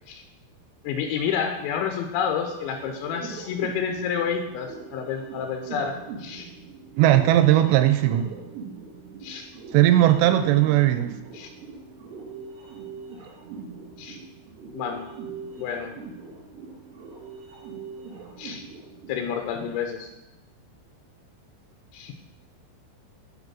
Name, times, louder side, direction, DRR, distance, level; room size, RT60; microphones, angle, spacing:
voice 1, 0.8-6.5 9.2-9.5 11.3-11.5 14.0-14.2 14.7-15.1 15.6-15.9 18.4-18.6 19.1-20.1 21.9-22.1, left 7 dB, 85° left, 4 dB, 3.0 m, -29 dB
sound 1, 2.4-19.2, right 5 dB, 60° right, 1.6 m, -41 dB
voice 2, 6.9-8.3 9.7-11.1, right 13 dB, 80° right, 9 dB, 2.6 m, -18 dB
9.5 x 5.3 x 6.1 m, 0.97 s
omnidirectional pair, 5.4 m